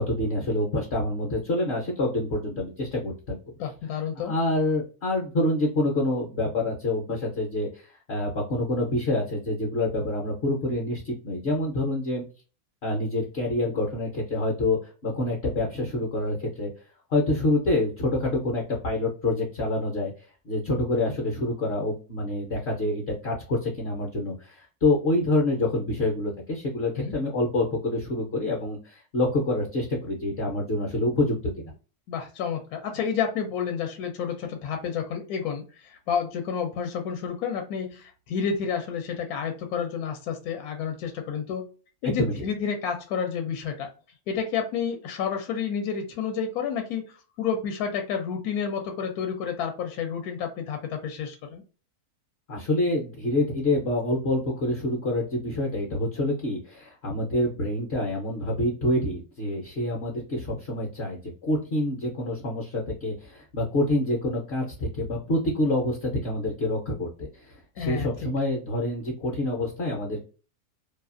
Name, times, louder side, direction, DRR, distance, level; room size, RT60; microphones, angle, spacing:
voice 1, 0.0-3.4 4.2-12.2 12.8-16.7 17.1-20.1 20.4-31.7 42.0-42.4 52.5-70.2, left 1 dB, 55° left, -2 dB, 0.8 m, -27 dB
voice 2, 3.6-4.3 27.0-27.1 32.1-41.7 42.0-43.9 44.3-51.6 67.8-68.3, left 7 dB, 75° left, 4 dB, 1.0 m, -30 dB
2.7 x 2.3 x 2.4 m, 0.36 s
omnidirectional pair, 1.6 m